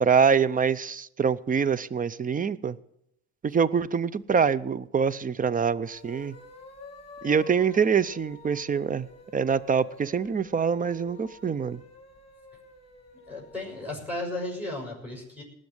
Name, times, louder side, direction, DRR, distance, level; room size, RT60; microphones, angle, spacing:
voice 1, 0.0-2.8 3.4-6.4 7.2-9.1 9.3-11.8, right 6 dB, 25° right, 0.6 m, -25 dB
sound 1, 5.7-13.9, left 3 dB, 20° left, 2.9 m, -48 dB
voice 2, 13.3-15.4, left 2 dB, 5° right, 6.7 m, -34 dB
19.0 x 6.5 x 8.0 m
cardioid pair, 90°, 30 cm